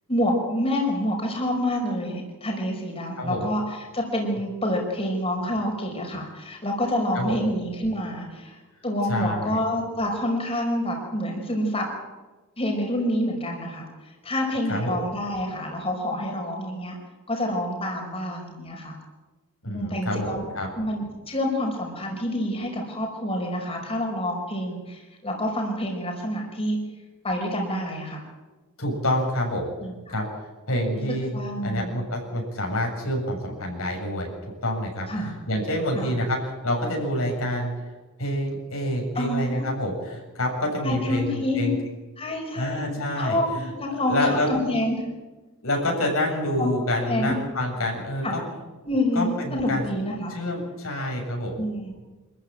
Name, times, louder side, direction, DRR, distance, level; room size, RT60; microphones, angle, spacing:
voice 1, 0.1-3.6 3.9-11.9 12.6-13.9 14.2-17.0 17.3-18.9 19.7-20.5 20.8-26.8 27.2-28.2 29.8-29.9 30.9-32.0 35.1-35.3 35.9-36.1 39.2-39.6 40.8-41.7 42.2-42.9 43.2-43.4 43.7-45.0 46.6-46.7 47.1-47.4 48.2-48.3 48.9-50.3 51.6-52.0, left 1 dB, 30° left, 0 dB, 5.3 m, -27 dB
voice 2, 9.1-9.6 14.7-15.0 19.6-20.7 28.8-29.7 30.1-31.4 31.6-34.3 34.6-35.1 35.5-37.9 38.2-41.7 42.5-43.4 44.1-44.5 45.6-48.4 49.1-49.8 50.3-51.6, left 1 dB, 75° left, 0 dB, 7.4 m, -27 dB
26.5 x 14.5 x 9.0 m, 1.2 s
head